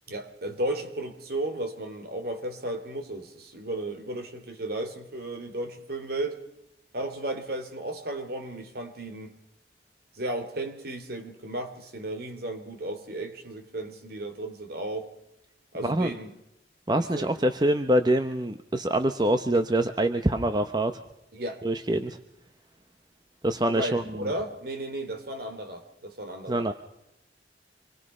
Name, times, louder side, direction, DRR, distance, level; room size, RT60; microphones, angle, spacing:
voice 1, 0.1-6.4 6.9-9.3 10.1-15.1 15.7-16.3 16.9-17.4 21.3-21.6 23.7-26.7, right 1 dB, 55° right, 6 dB, 3.0 m, -34 dB
voice 2, 16.9-21.0 21.6-22.2 23.4-24.3 26.5-26.7, right 1 dB, 25° right, 8 dB, 0.8 m, -25 dB
27.0 x 21.0 x 5.5 m, 0.84 s
head